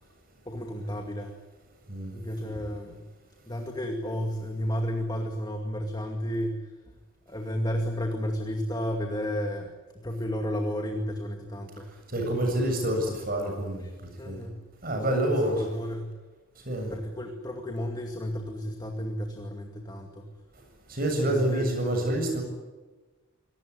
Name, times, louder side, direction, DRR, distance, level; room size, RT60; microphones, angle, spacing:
voice 1, 0.5-1.4 2.1-3.0 3.5-6.7 7.3-11.9 13.8-13.9 14.2-14.6 15.1-16.2 16.8-20.3 21.2-21.7, equal, 20° left, 3 dB, 2.3 m, -32 dB
voice 2, 12.1-13.8 14.3-14.4 14.8-15.6 16.7-16.9 20.9-22.4, right 1 dB, 45° right, 4 dB, 7.5 m, -27 dB
26.0 x 19.0 x 9.7 m, 1.2 s
head